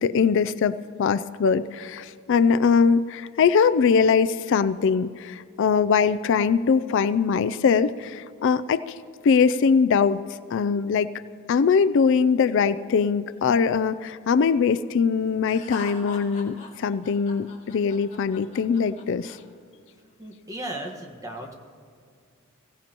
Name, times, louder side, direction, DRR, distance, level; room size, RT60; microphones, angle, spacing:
voice 1, 0.0-9.0 9.2-10.2 10.5-11.1 11.5-19.4, left 6 dB, 60° left, 14 dB, 0.4 m, -22 dB
Laughter, 15.4-19.4, left 3 dB, 35° left, 2.3 m, -41 dB
voice 2, 20.2-21.5, right 1 dB, 15° right, 2 dB, 1.4 m, -35 dB
22.0 x 16.5 x 3.0 m, 2.3 s
head